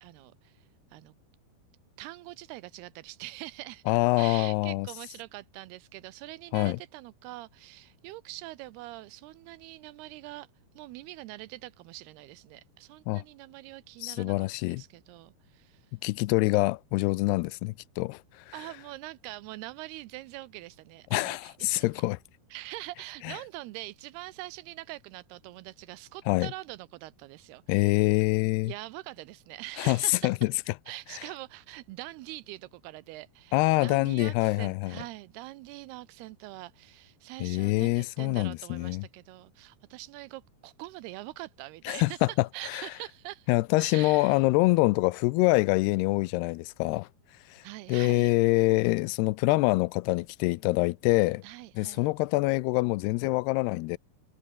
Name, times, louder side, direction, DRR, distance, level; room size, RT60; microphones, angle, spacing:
voice 1, 0.0-1.1 2.0-10.5 10.8-15.9 18.5-22.0 22.5-28.1 28.6-30.3 30.9-43.5 43.8-44.4 47.6-48.3 51.4-52.1, right 18 dB, 85° right, 2.7 m, -44 dB
voice 2, 3.9-4.9 6.5-6.8 13.1-13.2 14.0-14.8 16.0-18.5 21.1-22.2 23.2-23.4 26.3-26.5 27.7-28.7 29.8-30.5 33.5-35.0 37.4-39.0 41.9-42.3 42.7-42.9 43.5-47.1 47.5-47.6 47.9-51.4 51.8-54.0, left 22 dB, 85° left, 2.7 m, -25 dB
omnidirectional pair, 4.6 m